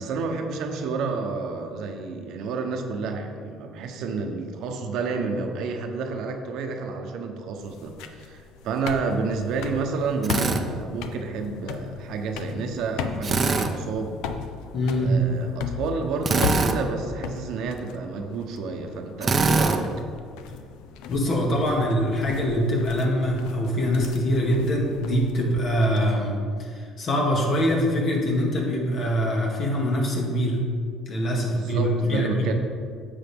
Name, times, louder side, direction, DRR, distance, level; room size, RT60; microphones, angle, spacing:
voice 1, 0.0-14.2 15.0-19.9 31.5-32.5, right 4 dB, 70° right, 4 dB, 1.0 m, -30 dB
sound 1, 7.6-26.0, left 6 dB, 80° left, 0.6 m, -37 dB
Drill, 10.2-10.6 13.2-13.7 16.2-16.8 19.2-19.8, right 4 dB, 35° right, 0.7 m, -22 dB
voice 2, 14.7-15.2 21.1-30.7 31.1-32.5, equal, 50° left, -1 dB, 2.2 m, -24 dB
9.9 x 7.4 x 3.6 m, 2.2 s
supercardioid pair, 85°, 0 cm